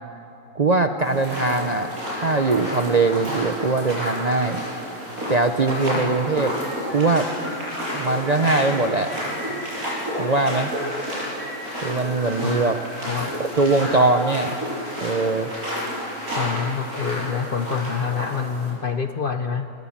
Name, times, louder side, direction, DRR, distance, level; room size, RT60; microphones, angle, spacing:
voice 1, 0.5-1.9 2.2-4.6 5.3-6.5 6.9-7.3 7.9-9.1 10.2-10.7 11.8-12.8 13.4-14.5 15.0-15.5, right 3 dB, 40° right, 6 dB, 0.6 m, -21 dB
sound 1, 1.0-18.7, equal, 65° right, 7.6 m, -30 dB
sound 2, 6.4-14.4, equal, ahead, 6.4 m, -40 dB
voice 2, 13.1-13.4 16.3-19.7, left 6 dB, 50° left, 8 dB, 0.7 m, -27 dB
26.0 x 19.0 x 7.3 m, 3.0 s
omnidirectional pair, 1.6 m